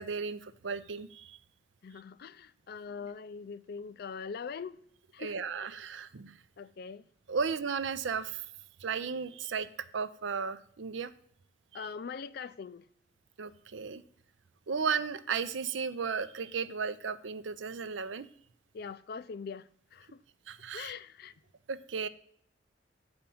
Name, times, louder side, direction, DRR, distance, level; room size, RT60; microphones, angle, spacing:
voice 1, 0.0-1.4 5.2-6.4 7.3-8.4 8.8-9.7 9.9-11.1 11.7-11.9 13.4-14.0 14.7-18.3 20.5-20.9 21.7-22.1, right 5 dB, 85° right, 0.6 m, -35 dB
voice 2, 1.8-4.8 5.1-5.4 6.6-7.0 11.7-12.8 18.7-20.2 20.7-21.3, left 5 dB, 55° left, 0.4 m, -42 dB
8.6 x 4.3 x 6.9 m
head